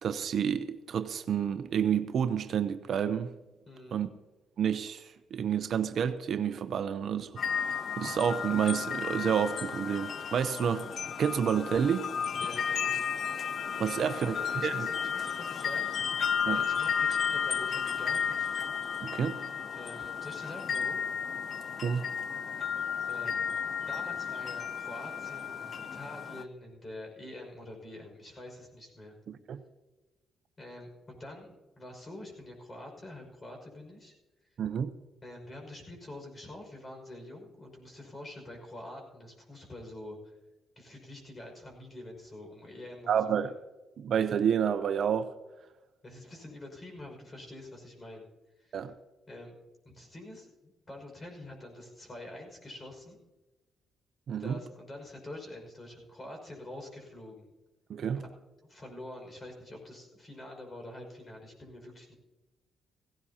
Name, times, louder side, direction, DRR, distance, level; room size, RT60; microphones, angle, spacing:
voice 1, 0.0-3.3 3.9-4.1 4.6-10.8 11.2-12.1 13.8-14.3 14.6-14.9 16.5-16.6 19.0-19.4 21.8-22.0 29.3-29.6 34.6-34.9 43.1-43.5 44.0-45.3 48.7-48.9 54.3-54.6 57.9-58.2, right 8 dB, 60° right, 0.7 m, -29 dB
voice 2, 3.7-4.0 10.5-10.6 12.4-13.0 13.8-18.6 19.7-21.0 23.1-23.4 23.9-29.2 30.6-34.1 35.2-40.4 40.8-43.5 46.0-48.3 48.6-48.9 49.3-49.5 49.8-53.2 54.4-57.5 58.1-58.3 58.7-62.2, left 1 dB, 30° left, 5.6 m, -46 dB
sound 1, 7.4-26.4, left 7 dB, 50° left, 0.6 m, -33 dB
17.0 x 16.5 x 2.9 m
cardioid pair, 90°, 0 cm